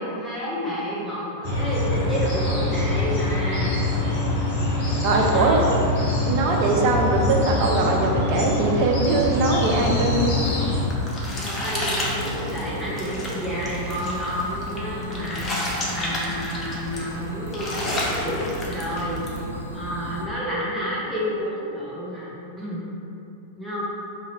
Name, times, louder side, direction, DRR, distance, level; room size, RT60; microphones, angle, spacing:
voice 1, 0.0-3.9 5.1-5.9 11.4-19.3 19.7-22.8 23.6-23.8, equal, ahead, -9 dB, 1.0 m, -30 dB
sound 1, 1.4-10.8, left 2 dB, 40° left, 1.5 m, -24 dB
voice 2, 5.0-5.6 6.3-10.2, right 3 dB, 45° right, 0 dB, 0.5 m, -21 dB
sound 2, 9.3-20.2, left 1 dB, 90° left, 0.4 m, -34 dB
sound 3, 10.5-19.4, left 1 dB, 20° left, 0.7 m, -31 dB
2.8 x 2.7 x 4.1 m, 2.8 s
figure-of-eight pair, 90°, 0 cm